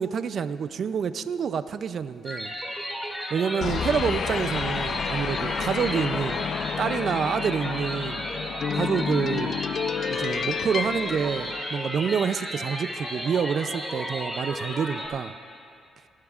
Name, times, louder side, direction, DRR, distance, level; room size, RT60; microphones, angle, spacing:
voice 1, 0.0-2.5 3.3-6.5 6.8-8.2 8.7-9.6 10.1-15.3, right 7 dB, 55° right, 12 dB, 0.4 m, -27 dB
sound 1, 2.3-15.1, equal, 5° left, 2.2 m, -34 dB
sound 2, 3.6-12.2, left 7 dB, 55° left, 0.3 m, -30 dB
26.5 x 12.0 x 2.5 m, 2.4 s
cardioid pair, 90°, 0 cm